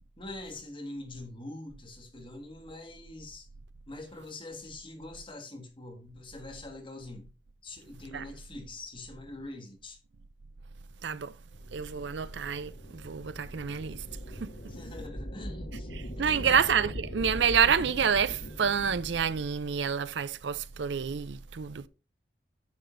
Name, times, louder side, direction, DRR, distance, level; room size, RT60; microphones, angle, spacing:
voice 1, 0.2-3.5 3.9-7.3 7.6-10.0 14.6-15.9 16.2-16.6, left 2 dB, 30° left, 1.6 m, -44 dB
voice 2, 11.0-11.3 11.7-14.0 14.4-14.5 16.2-21.9, right 7 dB, 80° right, 0.5 m, -28 dB
sound 1, 11.5-19.6, equal, 75° left, 2.0 m, -41 dB
9.4 x 6.8 x 2.6 m
head